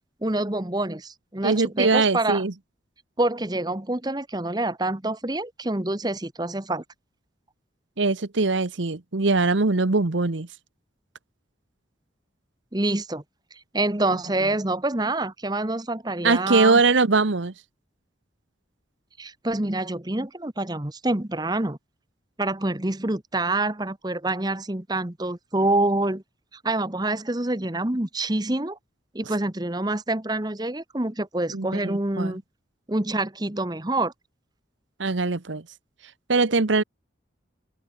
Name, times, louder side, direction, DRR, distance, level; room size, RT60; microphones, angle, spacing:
voice 1, 0.2-2.4 3.2-6.8 12.7-13.2 13.7-16.8 19.2-21.8 22.4-26.2 26.6-28.8 29.1-32.4 32.9-34.1, right 2 dB, 20° right, 1.1 m, -26 dB
voice 2, 1.4-2.5 8.0-10.5 16.2-17.5 31.5-32.4 35.0-35.6 36.3-36.8, right 3 dB, 75° right, 1.1 m, -22 dB
open air
head